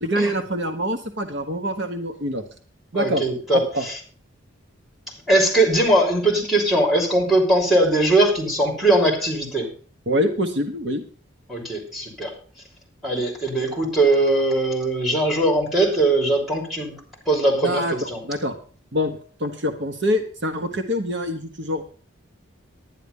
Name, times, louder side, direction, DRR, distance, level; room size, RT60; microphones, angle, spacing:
voice 1, 0.0-2.4 2.9-3.2 3.5-3.8 10.1-11.0 17.6-18.5 18.9-21.8, equal, 55° right, 6 dB, 1.2 m, -25 dB
voice 2, 2.9-3.9 5.3-9.7 11.5-12.3 13.0-16.9 17.3-17.8 18.1-18.2, right 1 dB, ahead, 1 dB, 3.2 m, -20 dB
11.0 x 10.0 x 5.4 m, 0.40 s
head